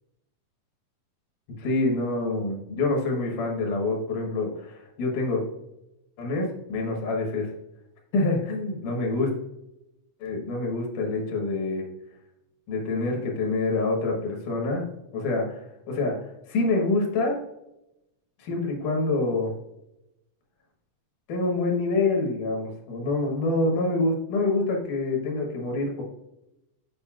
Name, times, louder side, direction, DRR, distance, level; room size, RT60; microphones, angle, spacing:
voice 1, 1.6-5.4 6.2-7.5 8.1-9.3 10.2-11.9 12.7-14.9 15.1-17.4 18.4-19.5 21.3-26.0, left 2 dB, 85° left, 0 dB, 2.9 m, -26 dB
7.3 x 6.4 x 2.4 m, 0.87 s
omnidirectional pair, 3.6 m